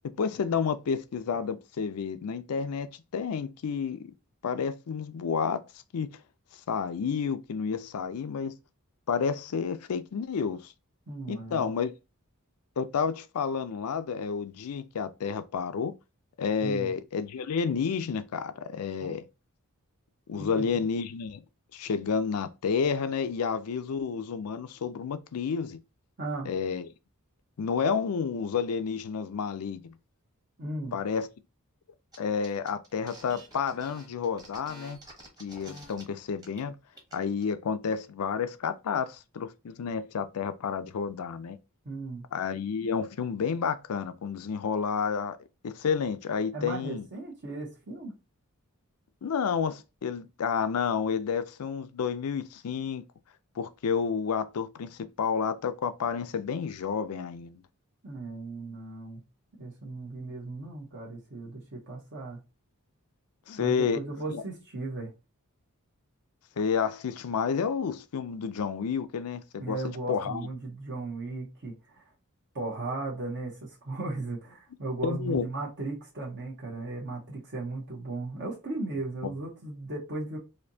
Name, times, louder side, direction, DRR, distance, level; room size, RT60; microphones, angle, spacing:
voice 1, 0.2-4.0 4.4-5.6 5.9-6.2 6.7-8.5 9.1-10.7 11.3-11.9 12.8-15.9 16.4-19.2 20.3-21.4 21.7-25.8 26.5-26.9 27.6-29.9 30.9-31.3 32.2-35.0 35.4-36.7 37.1-41.6 42.3-45.4 45.6-47.1 49.2-53.0 53.6-57.6 63.5-64.0 64.3-64.4 66.6-69.8 70.1-70.5 75.0-75.5 79.2-79.3, left 6 dB, 80° left, 0.4 m, -30 dB
voice 2, 11.1-11.8 16.6-16.9 19.0-19.2 20.4-20.9 26.2-26.5 30.6-30.9 41.8-42.3 46.5-48.1 58.0-59.2 59.6-62.4 63.6-65.1 69.6-72.1 72.5-80.4, right 2 dB, 55° right, 0.9 m, -36 dB
sound 1, 32.1-32.2 32.4-36.0 36.4-36.6 36.9-37.4, right 1 dB, 15° right, 1.0 m, -49 dB
4.2 x 2.7 x 2.7 m
head